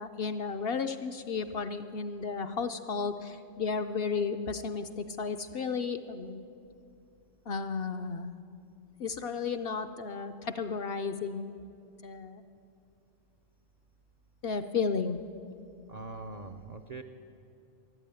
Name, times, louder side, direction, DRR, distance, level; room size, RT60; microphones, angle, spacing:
voice 1, 0.0-6.4 7.5-8.3 9.0-11.6 12.0-12.4 14.4-15.2, left 5 dB, 60° left, 8 dB, 0.7 m, -33 dB
voice 2, 15.9-17.0, right 3 dB, 50° right, 4 dB, 0.5 m, -42 dB
14.0 x 11.0 x 8.9 m, 2.6 s
omnidirectional pair, 1.3 m